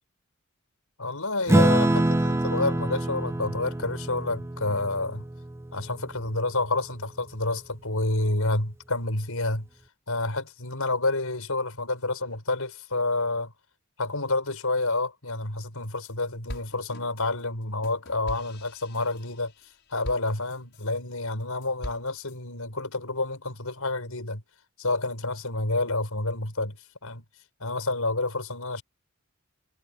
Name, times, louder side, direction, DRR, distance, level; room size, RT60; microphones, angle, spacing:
voice 1, 1.0-5.2 5.7-9.7 10.1-13.5 14.0-19.5 19.9-24.4 24.8-26.8 27.0-27.2 27.6-28.8, left 2 dB, 85° left, 5.8 m, -29 dB
Acoustic guitar / Strum, 1.5-6.3, right 1 dB, 10° right, 0.4 m, -25 dB
sound 1, 15.6-16.1 16.5-21.0 21.4-22.4, equal, 50° left, 7.0 m, -42 dB
head